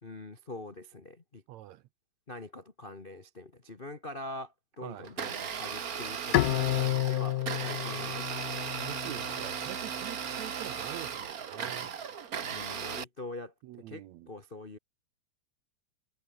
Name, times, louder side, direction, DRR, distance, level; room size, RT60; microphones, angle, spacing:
voice 1, 0.0-1.4 2.3-8.9 12.5-14.8, left 2 dB, 40° left, 0.7 m, -44 dB
voice 2, 1.5-1.8 4.8-5.1 8.8-11.9 13.6-14.3, right 14 dB, 70° right, 1.8 m, -45 dB
Domestic sounds home sounds, 5.0-13.0, right 7 dB, 55° right, 0.9 m, -36 dB
Bowed string instrument, 6.3-9.6, left 17 dB, 85° left, 2.4 m, -30 dB
omnidirectional pair, 3.7 m